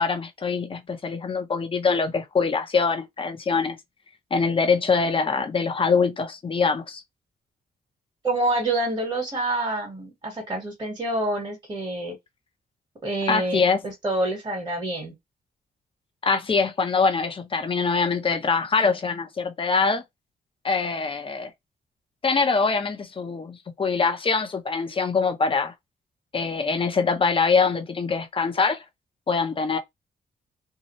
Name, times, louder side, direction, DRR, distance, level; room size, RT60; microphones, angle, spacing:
voice 1, 0.0-3.8 4.3-7.0 13.3-13.9 16.2-20.0 20.6-21.5 22.2-25.7 26.3-28.8 29.3-29.8, left 4 dB, 35° left, 0.8 m, -23 dB
voice 2, 8.2-12.2 13.0-15.1, right 2 dB, 25° right, 1.4 m, -27 dB
2.8 x 2.3 x 2.9 m
cardioid pair, 115°, 16 cm